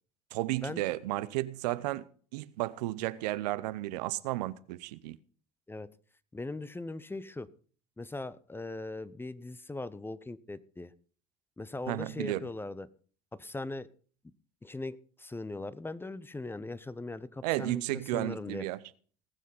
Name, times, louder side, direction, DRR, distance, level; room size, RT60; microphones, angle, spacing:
voice 1, 0.3-2.0 2.3-5.2 11.9-12.5 17.4-18.8, right 17 dB, 80° right, 0.7 m, -33 dB
voice 2, 6.3-7.5 8.0-10.9 11.6-12.9 13.3-13.9 14.6-18.6, left 2 dB, 10° left, 0.7 m, -40 dB
19.0 x 6.3 x 5.5 m
supercardioid pair, 85°, 20 cm